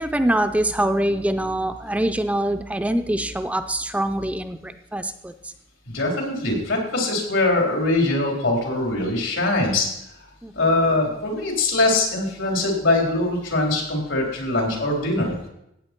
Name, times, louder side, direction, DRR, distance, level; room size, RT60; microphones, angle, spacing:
voice 1, 0.0-5.5 10.4-10.5, right 1 dB, 5° right, 8 dB, 0.5 m, -24 dB
voice 2, 5.9-9.9 10.5-15.4, left 2 dB, 80° left, -1 dB, 3.8 m, -22 dB
15.5 x 9.0 x 4.5 m, 0.83 s
head